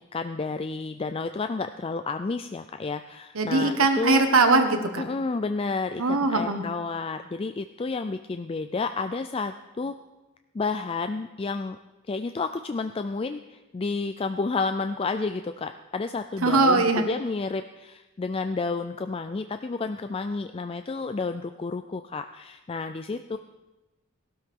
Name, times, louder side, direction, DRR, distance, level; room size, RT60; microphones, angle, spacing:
voice 1, 0.1-4.3 5.0-9.9 10.5-11.8 12.1-23.4, left 4 dB, 25° left, 9 dB, 0.3 m, -31 dB
voice 2, 3.3-5.0 6.0-6.6 16.4-17.0, right 3 dB, 85° right, 6 dB, 1.4 m, -21 dB
18.5 x 12.5 x 3.7 m, 1.1 s
head